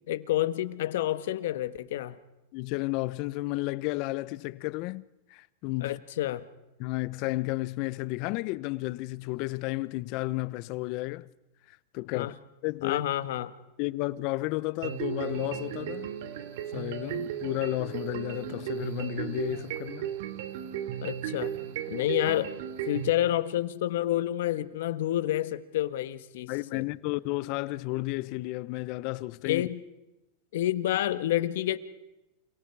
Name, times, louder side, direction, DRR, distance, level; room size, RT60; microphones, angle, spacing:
voice 1, 0.1-2.2 5.8-6.5 12.1-12.3 12.8-13.5 21.0-21.5 21.9-22.5 22.9-26.8 29.4-29.8 30.5-31.8, left 13 dB, 75° left, 1.7 m, -29 dB
voice 2, 2.5-5.0 5.3-6.0 6.8-11.3 11.7-12.3 12.6-13.0 13.8-16.1 16.7-20.1 26.5-29.6, left 21 dB, 50° left, 0.8 m, -32 dB
sound 1, 14.8-23.1, right 10 dB, 70° right, 2.6 m, -35 dB
28.5 x 28.5 x 4.8 m
supercardioid pair, 130°, 0 cm